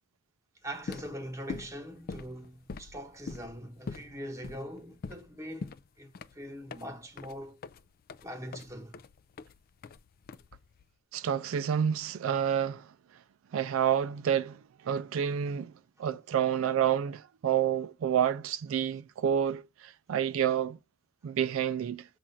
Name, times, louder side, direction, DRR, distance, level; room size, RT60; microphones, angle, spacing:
voice 1, 0.6-7.6 8.2-9.0, equal, 15° right, 1.1 m, -42 dB
sound 1, 0.7-10.9, left 4 dB, 45° left, 0.4 m, -44 dB
voice 2, 11.1-12.9 13.5-15.7 16.0-20.8 21.2-22.1, right 9 dB, 75° right, 0.4 m, -29 dB
7.4 x 2.5 x 5.5 m
head